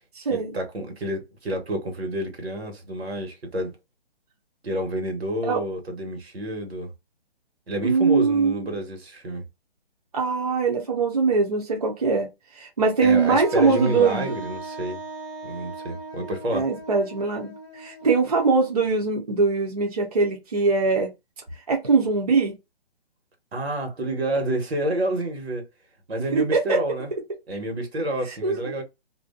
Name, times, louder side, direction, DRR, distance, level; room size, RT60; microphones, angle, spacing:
voice 1, 0.3-3.7 4.6-6.9 7.7-9.5 13.0-15.0 15.4-16.7 23.5-25.6 26.1-27.1 27.5-28.8, right 1 dB, 85° right, 1.2 m, -29 dB
voice 2, 7.8-8.6 10.1-12.3 12.5-14.4 16.5-21.1 21.7-22.5 26.3-26.8 28.4-28.6, right 4 dB, 40° right, 0.5 m, -22 dB
Wind instrument woodwind instrument, 13.1-18.9, right 2 dB, 25° left, 0.9 m, -38 dB
2.5 x 2.1 x 2.3 m
hypercardioid pair, 175°, 31 cm